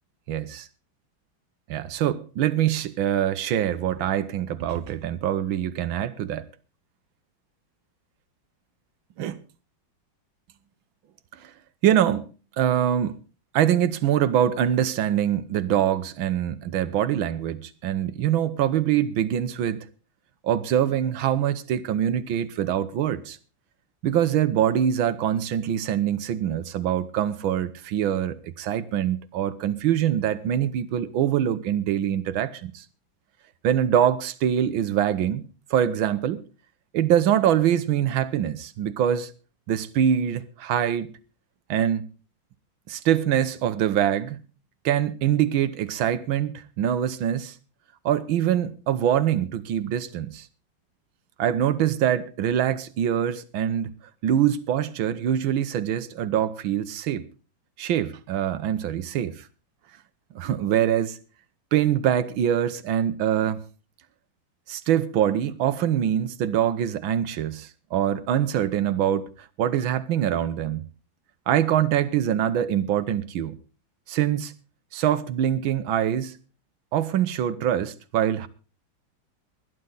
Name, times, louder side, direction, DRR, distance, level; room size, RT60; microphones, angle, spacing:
voice 1, 0.3-0.6 1.7-6.4 9.2-9.4 11.4-11.5 11.8-12.3 12.6-13.2 13.5-19.8 20.4-23.4 24.0-32.8 33.6-35.4 35.7-36.4 36.9-39.3 39.7-41.1 41.7-42.1 42.9-44.4 44.8-47.5 48.0-50.5 51.4-53.9 54.2-57.3 57.8-59.4 60.3-61.2 61.7-63.6 64.7-69.3 69.6-70.9 71.5-73.6 74.1-74.5 74.9-76.3 76.9-78.5, right 10 dB, 90° right, 1.7 m, -24 dB
20.0 x 11.0 x 3.9 m
omnidirectional pair, 2.1 m